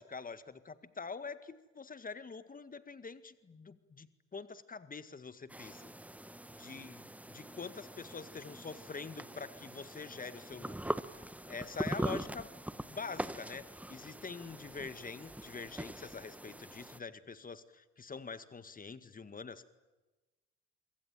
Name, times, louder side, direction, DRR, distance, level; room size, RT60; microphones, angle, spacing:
voice 1, 0.0-5.9 6.6-12.5 12.9-19.7, left 5 dB, 25° left, 12 dB, 1.9 m, -45 dB
sound 1, 5.5-17.0, right 1 dB, 5° right, 1.2 m, -42 dB
26.0 x 24.0 x 9.2 m, 1.2 s
figure-of-eight pair, 55°, 35 cm